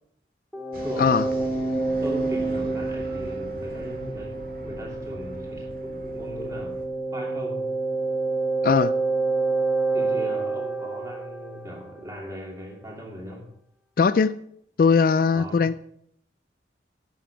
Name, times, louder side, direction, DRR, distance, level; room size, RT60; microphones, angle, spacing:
sound 1, 0.5-12.1, right 3 dB, ahead, 1.0 m, -28 dB
sound 2, 0.7-6.9, right 1 dB, 50° right, 2.0 m, -43 dB
voice 1, 0.8-1.7 2.0-6.8 7.1-7.7 9.9-13.5 15.3-15.6, equal, 20° right, -2 dB, 2.8 m, -38 dB
voice 2, 8.6-8.9 14.0-14.3 14.8-15.7, left 5 dB, 50° left, 14 dB, 0.3 m, -19 dB
10.0 x 7.1 x 6.1 m, 0.70 s
head